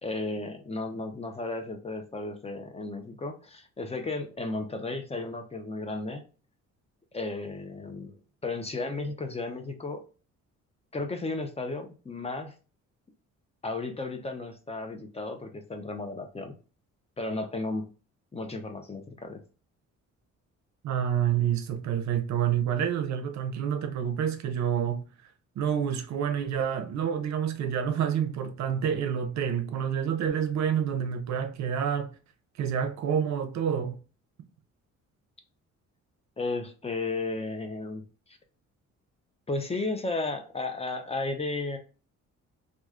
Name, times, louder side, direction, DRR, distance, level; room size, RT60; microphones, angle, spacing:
voice 1, 0.0-6.2 7.1-8.2 8.4-10.0 10.9-12.5 13.6-16.5 17.2-17.9 18.3-19.4 36.4-38.0 38.3-38.4 39.5-41.8, left 3 dB, 20° left, 0.6 m, -34 dB
voice 2, 20.8-25.0 25.6-32.1 32.6-34.0, right 8 dB, 65° right, 0.6 m, -28 dB
3.1 x 2.4 x 2.4 m
cardioid pair, 90°, 30 cm